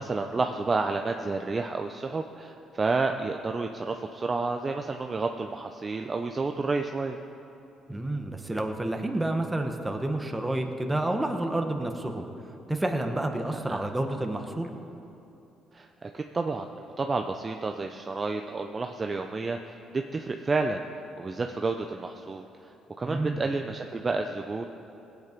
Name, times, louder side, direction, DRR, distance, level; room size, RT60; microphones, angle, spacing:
voice 1, 0.0-7.2 13.5-13.8 15.7-16.7 17.0-20.8 21.2-22.4 23.0-24.6, right 3 dB, 30° right, 4 dB, 0.6 m, -30 dB
voice 2, 7.9-12.3 12.7-14.7 23.0-23.4, right 1 dB, 10° right, 4 dB, 1.3 m, -29 dB
18.5 x 8.3 x 5.3 m, 2.8 s
supercardioid pair, 80°, 0 cm